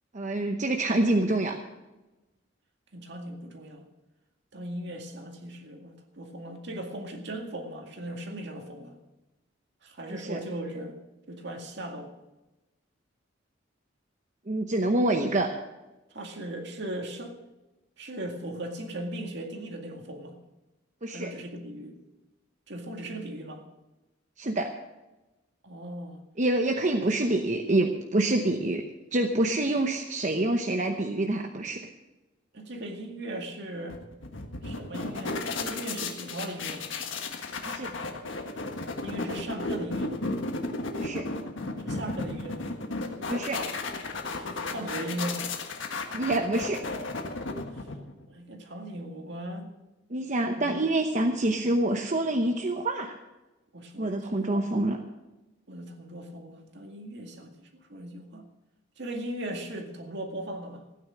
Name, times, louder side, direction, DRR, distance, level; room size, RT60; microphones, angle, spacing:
voice 1, 0.1-1.6 10.1-10.4 14.5-15.5 21.0-21.3 24.4-24.7 26.4-28.8 29.1-31.8 37.7-37.9 41.0-41.2 43.3-43.6 46.1-46.8 50.1-53.1 54.0-55.0, right 2 dB, 40° right, 3 dB, 0.9 m, -26 dB
voice 2, 2.9-3.9 4.5-9.0 9.8-11.0 11.3-12.1 16.1-17.4 18.0-20.4 21.1-22.0 22.7-23.6 25.6-26.2 32.5-34.0 34.6-36.9 39.0-40.3 41.8-42.7 44.4-45.5 48.3-49.7 50.5-50.7 53.7-54.6 55.7-58.4 59.0-60.9, right 1 dB, 65° right, 3 dB, 2.1 m, -38 dB
sound 1, 33.9-48.3, left 3 dB, 80° left, 1.6 m, -34 dB
15.5 x 9.8 x 6.3 m, 1.0 s
head